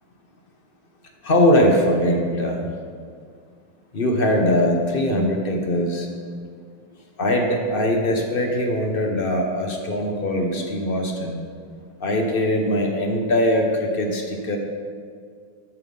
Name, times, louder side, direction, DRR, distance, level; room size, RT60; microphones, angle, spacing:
voice 1, 1.2-2.7 3.9-6.1 7.2-11.4 12.0-14.6, left 1 dB, 40° left, 2 dB, 0.8 m, -21 dB
13.5 x 6.0 x 5.4 m, 2.1 s
omnidirectional pair, 2.4 m